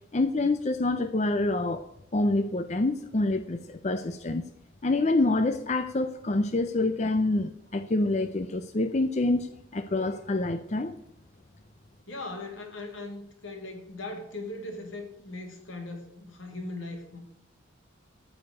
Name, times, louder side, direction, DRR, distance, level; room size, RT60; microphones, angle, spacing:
voice 1, 0.1-1.8 2.1-4.5 4.8-11.0, left 2 dB, 35° left, 9 dB, 0.5 m, -27 dB
voice 2, 12.1-17.2, left 2 dB, 75° left, 3 dB, 2.7 m, -39 dB
14.5 x 5.0 x 8.2 m, 0.79 s
head